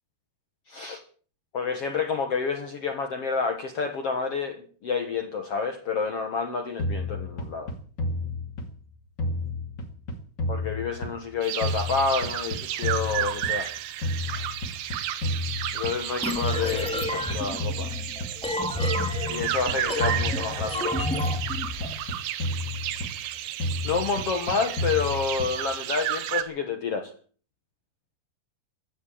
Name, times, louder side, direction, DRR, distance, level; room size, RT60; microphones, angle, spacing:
voice 1, 0.7-1.0 1.5-7.7 10.5-13.7 15.7-17.9 19.3-21.0 23.8-27.1, left 5 dB, 60° left, 6 dB, 1.6 m, -29 dB
sound 1, 6.8-8.9 9.2-11.3 11.6-13.7 14.0-16.1 16.4-18.4 18.8-20.9 21.2-23.3 23.6-25.7, left 2 dB, 35° left, 2.1 m, -31 dB
sound 2, 11.4-26.4, right 12 dB, 80° right, 3.1 m, -33 dB
sound 3, 16.2-21.9, left 1 dB, ahead, 2.4 m, -31 dB
15.0 x 10.0 x 8.6 m, 0.43 s
omnidirectional pair, 4.6 m